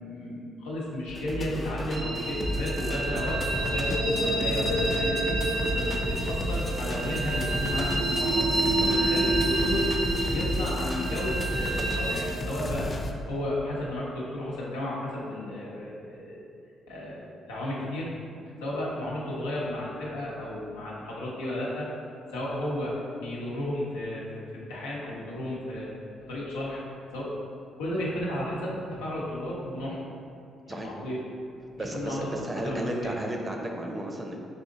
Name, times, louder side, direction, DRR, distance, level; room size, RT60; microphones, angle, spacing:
voice 1, 0.0-5.3 5.7-8.5 8.8-9.9 10.3-12.9 13.3-16.4 16.9-18.1 18.6-21.9 22.3-25.9 26.2-26.8 27.1-27.4 27.8-30.0 30.7-31.2 31.8-32.3 32.6-33.1, left 1 dB, 90° left, -5 dB, 0.8 m, -33 dB
sound 1, 1.1-13.1, left 1 dB, 35° left, 0.4 m, -32 dB
sound 2, 1.9-12.1, right 2 dB, 75° right, 1.3 m, -28 dB
voice 2, 31.8-34.4, right 1 dB, 25° right, 1 dB, 0.7 m, -34 dB
4.2 x 2.6 x 3.8 m, 2.5 s
hypercardioid pair, 55°, 0 cm